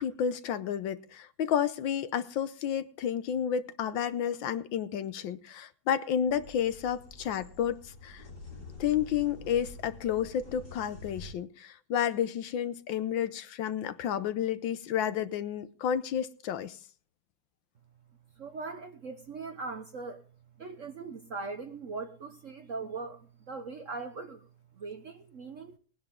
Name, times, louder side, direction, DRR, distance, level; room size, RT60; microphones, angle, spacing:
voice 1, 0.0-8.2 8.8-16.8, left 9 dB, 70° left, 1.5 m, -31 dB
sound 1, 6.3-11.3, left 2 dB, 50° left, 6.2 m, -47 dB
voice 2, 18.4-20.2 20.6-24.5 24.8-25.8, right 4 dB, 50° right, 1.0 m, -40 dB
19.0 x 10.5 x 3.7 m
omnidirectional pair, 2.3 m